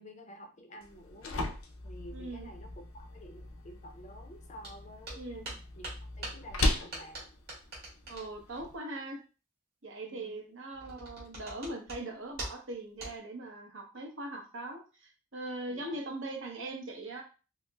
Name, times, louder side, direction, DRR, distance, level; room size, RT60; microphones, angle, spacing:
voice 1, 0.0-1.4 1.8-5.5 5.8-5.9 6.2-7.3 10.0-10.4 15.7-16.0, equal, 35° left, 5 dB, 0.5 m, -50 dB
sound 1, 0.8-8.8, left 2 dB, 85° left, 0.6 m, -38 dB
voice 2, 2.1-2.5 5.2-5.5 8.1-9.2 9.8-17.2, right 2 dB, 70° right, 2 dB, 0.9 m, -41 dB
sound 2, 4.6-4.7 5.0-8.7 10.7-12.0 12.3-12.7 13.0-13.2, right 2 dB, 50° right, 1.7 m, -43 dB
5.2 x 2.0 x 2.3 m, 0.34 s
head